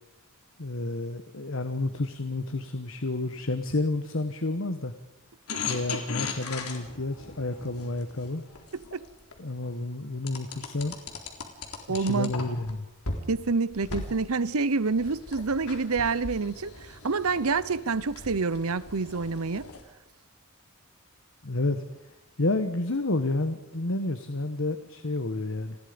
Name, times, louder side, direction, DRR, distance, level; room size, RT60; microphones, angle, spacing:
voice 1, 0.6-4.9 5.7-8.4 9.4-10.9 11.9-12.9 21.4-21.8 22.4-25.8, left 2 dB, 60° left, 1.3 m, -30 dB
sound 1, 5.5-9.4 10.3-12.7 13.0-13.2 13.7-19.8, left 4 dB, 85° left, 3.8 m, -38 dB
voice 2, 11.9-12.3 13.3-16.7 17.0-19.7, right 4 dB, 75° right, 0.9 m, -27 dB
29.5 x 20.5 x 5.2 m
head